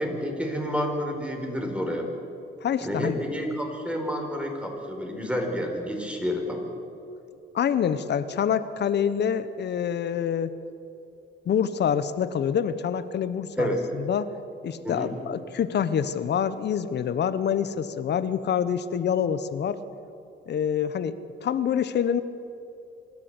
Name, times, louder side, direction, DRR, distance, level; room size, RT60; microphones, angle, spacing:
voice 1, 0.0-2.1 2.8-6.6 13.6-13.8 14.8-15.1, equal, 5° right, 2 dB, 4.4 m, -29 dB
voice 2, 2.6-3.2 7.5-10.6 11.5-14.3 14.6-19.8 20.5-22.2, left 8 dB, 60° left, 14 dB, 1.0 m, -26 dB
26.0 x 12.5 x 8.0 m, 2.7 s
cardioid pair, 90°, 20 cm